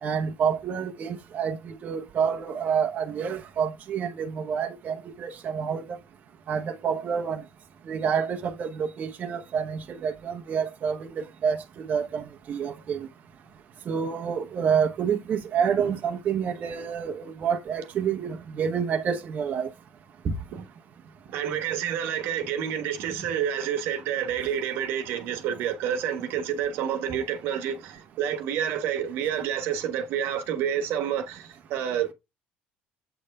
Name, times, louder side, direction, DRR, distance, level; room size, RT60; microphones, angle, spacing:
voice 1, 0.0-5.8 6.5-7.4 7.9-13.1 13.9-19.7 20.2-20.3, right 7 dB, 45° right, 0.9 m, -28 dB
voice 2, 21.3-32.1, right 9 dB, 75° right, 1.4 m, -29 dB
8.2 x 3.3 x 5.3 m
cardioid pair, 105°, 4 cm